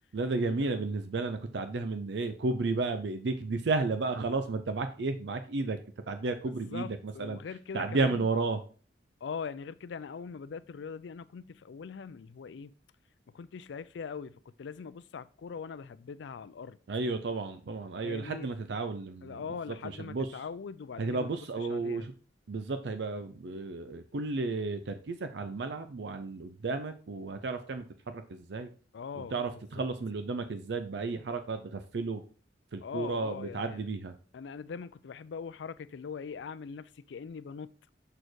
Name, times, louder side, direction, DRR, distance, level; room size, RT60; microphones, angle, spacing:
voice 1, 0.1-5.8 6.1-7.4 7.7-8.6 16.9-19.4 20.0-20.3 21.0-22.1 22.5-28.7 29.2-32.2 32.7-34.1, right 3 dB, 70° right, 0.5 m, -33 dB
voice 2, 6.4-8.3 9.2-12.7 13.3-16.8 18.0-18.5 19.2-22.1 28.9-29.3 29.8-29.9 32.8-33.8 34.3-37.7, left 6 dB, 80° left, 0.4 m, -41 dB
6.6 x 4.3 x 4.5 m
head